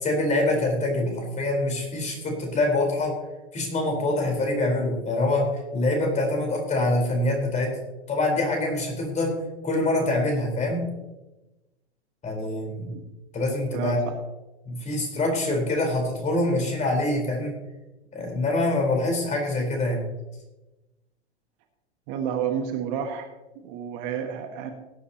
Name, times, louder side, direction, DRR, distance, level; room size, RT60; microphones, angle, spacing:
voice 1, 0.0-3.1 3.5-5.5 5.7-7.7 8.1-9.4 9.6-10.8 12.2-12.9 13.3-14.0 14.7-17.6 18.1-20.0, left 2 dB, 20° left, 2 dB, 4.2 m, -25 dB
voice 2, 13.7-14.2 22.1-23.2 23.5-24.7, right 8 dB, 40° right, 5 dB, 1.6 m, -30 dB
18.5 x 9.7 x 2.9 m, 1.0 s
hypercardioid pair, 105°, 33 cm